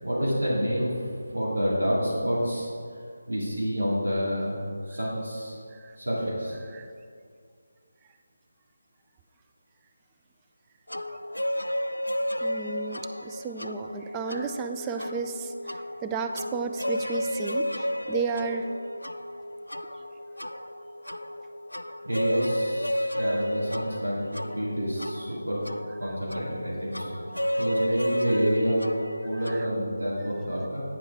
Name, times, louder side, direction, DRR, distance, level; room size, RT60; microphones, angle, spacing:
voice 1, 0.0-2.7 3.3-4.6 4.9-5.6 6.0-6.5 22.0-25.6 26.0-27.2 27.6-28.8 29.2-30.8, equal, 80° right, -6 dB, 2.3 m, -28 dB
sound 1, 10.9-29.7, equal, 85° left, 0.3 m, -32 dB
voice 2, 12.4-15.5 16.0-18.7 23.2-23.4 29.3-29.7, right 5 dB, 15° right, 6 dB, 0.3 m, -33 dB
9.1 x 7.0 x 3.5 m, 2.2 s
figure-of-eight pair, 155°, 0 cm